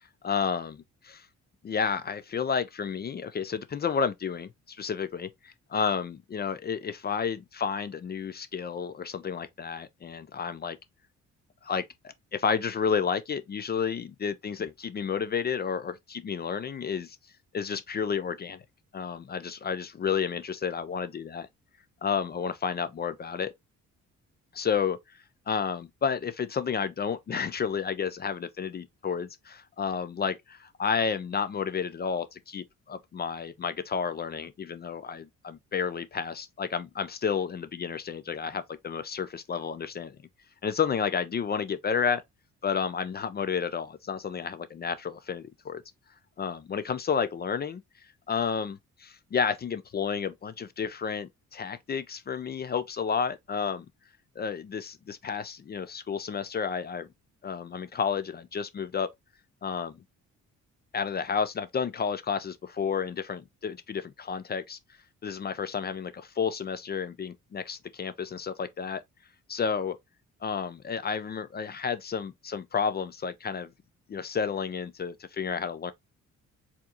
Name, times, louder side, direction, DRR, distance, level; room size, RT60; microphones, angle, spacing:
voice 1, 0.2-1.3 1.6-10.8 11.6-17.2 17.5-18.6 18.9-21.5 22.0-23.5 24.5-25.0 25.5-40.2 40.6-42.2 42.6-45.8 46.4-47.8 48.3-53.9 54.4-57.1 57.4-59.1 59.6-60.0 60.9-64.8 65.2-69.0 69.5-70.0 70.4-73.7 74.1-75.9, left 6 dB, 35° left, 0.4 m, -31 dB
4.4 x 2.8 x 2.4 m
cardioid pair, 90°, 30 cm